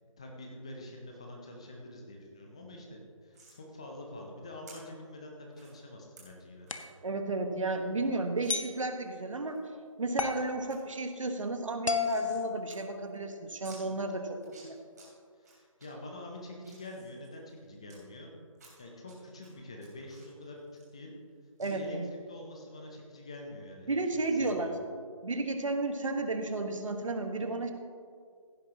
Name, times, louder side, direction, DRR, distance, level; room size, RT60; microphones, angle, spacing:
voice 1, 0.2-6.7 15.4-18.3 18.8-20.6 20.9-21.1 21.6-24.0 24.3-24.8, left 1 dB, 10° left, 1 dB, 0.5 m, -46 dB
sound 1, 3.3-3.6 4.7-4.8 5.5-5.7 6.2-6.3 6.7-6.9 7.3-7.4 7.6-7.7 8.4-8.5 9.1-9.6 10.0-10.4 10.7-10.8 11.1-12.4 12.7-12.8 13.1-13.2 13.6-13.8 14.3-15.1 15.4-15.9 16.3-18.0 18.6-19.1 19.4-21.3 21.6-21.7, right 4 dB, 30° right, 2.9 m, -56 dB
sound 2, 6.7-7.0 8.5-8.8 10.2-10.5 11.9-13.3, left 5 dB, 65° left, 1.0 m, -33 dB
voice 2, 7.0-9.6 10.0-14.8 21.6-22.1 23.9-24.8 25.2-27.7, right 2 dB, 65° right, 6 dB, 1.3 m, -33 dB
15.5 x 9.8 x 2.9 m, 2.2 s
figure-of-eight pair, 165°, 18 cm